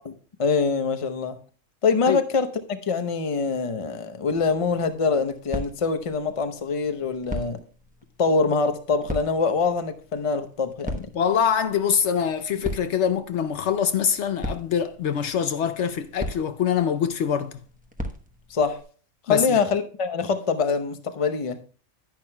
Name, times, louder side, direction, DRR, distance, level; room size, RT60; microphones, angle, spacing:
voice 1, 0.0-1.4 1.8-7.6 8.2-11.1 18.5-18.8 19.3-21.6, left 4 dB, 30° left, 0.8 m, -24 dB
sound 1, 4.3-18.8, equal, 5° right, 0.9 m, -39 dB
voice 2, 11.1-17.6 19.3-19.6, left 8 dB, 70° left, 0.9 m, -24 dB
10.5 x 10.5 x 2.2 m
omnidirectional pair, 1.3 m